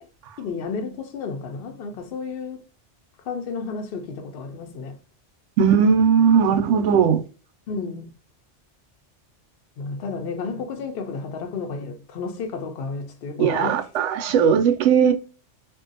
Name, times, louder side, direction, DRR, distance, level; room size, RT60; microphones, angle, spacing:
voice 1, 0.4-2.6 3.2-5.0 7.7-8.1 9.8-13.8, left 4 dB, 60° left, 0.7 m, -32 dB
voice 2, 5.6-7.2 13.4-15.1, right 7 dB, 85° right, 0.9 m, -18 dB
2.5 x 2.2 x 2.5 m
omnidirectional pair, 1.2 m